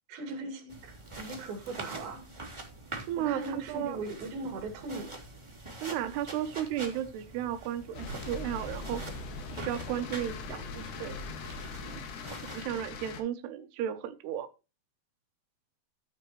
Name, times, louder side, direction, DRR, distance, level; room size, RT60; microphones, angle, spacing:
voice 1, 0.1-2.3 3.2-5.1, right 2 dB, 55° right, 3.7 m, -39 dB
sound 1, 0.7-12.6, right 2 dB, 10° right, 1.4 m, -45 dB
voice 2, 3.1-4.0 5.8-9.0 9.5-11.2 11.8-12.0 12.5-14.5, right 10 dB, 80° right, 2.4 m, -34 dB
sound 2, 7.9-13.2, left 4 dB, 75° left, 4.4 m, -41 dB
14.0 x 9.5 x 3.1 m
omnidirectional pair, 5.9 m